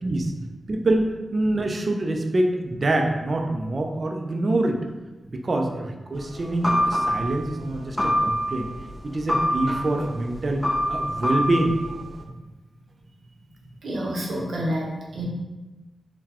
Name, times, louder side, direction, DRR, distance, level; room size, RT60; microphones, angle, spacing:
voice 1, 0.0-0.3 0.7-4.8 5.3-8.7 9.0-10.6 10.9-11.8, right 2 dB, 45° right, 3 dB, 0.4 m, -25 dB
sound 1, 6.1-12.2, equal, 10° left, 0.6 m, -26 dB
voice 2, 13.8-15.3, right 1 dB, 80° right, -3 dB, 0.8 m, -29 dB
3.8 x 2.2 x 2.9 m, 1.1 s
wide cardioid pair, 85°, 0 cm